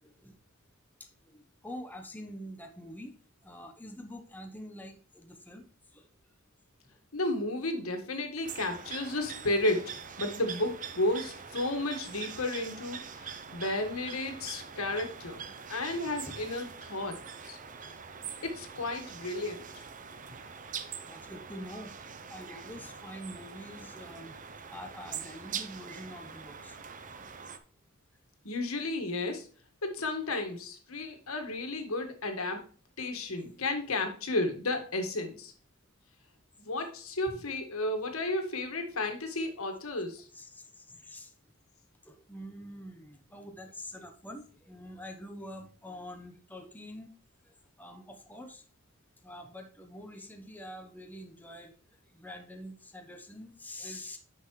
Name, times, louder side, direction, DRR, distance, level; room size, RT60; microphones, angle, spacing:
voice 1, 0.0-0.4 1.0-1.1 1.3-3.1 3.4-5.6 5.9-6.1 15.9-16.4 21.0-21.9 22.3-24.4 24.7-26.8 40.3-41.3 42.0-47.1 47.5-48.6 49.2-51.7 52.1-54.2, equal, 10° left, 4 dB, 0.9 m, -46 dB
voice 2, 7.1-17.2 17.5-17.6 18.4-19.8 20.3-20.4 28.4-29.5 29.8-32.7 33.0-35.5 36.6-40.3, left 2 dB, 85° left, 5 dB, 1.7 m, -33 dB
sound 1, 8.4-27.6, right 6 dB, 35° right, 0.7 m, -43 dB
9.5 x 5.8 x 3.2 m, 0.41 s
head